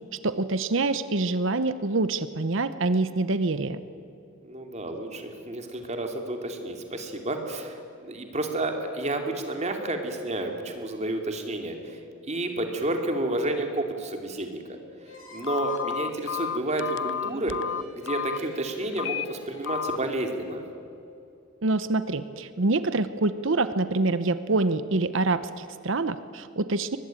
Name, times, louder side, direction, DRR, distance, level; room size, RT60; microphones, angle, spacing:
voice 1, 0.2-3.8 21.6-27.0, right 3 dB, 65° right, 12 dB, 0.9 m, -26 dB
voice 2, 4.4-12.0 12.3-14.6 15.3-17.6 17.9-20.6, right 2 dB, 35° right, 4 dB, 2.8 m, -30 dB
sound 1, 15.0-20.5, left 3 dB, 85° left, 6.3 m, -48 dB
Telephone, 15.4-18.4 18.9-19.2 19.6-20.0, left 9 dB, 60° left, 0.5 m, -31 dB
23.5 x 20.0 x 9.0 m, 2.6 s
head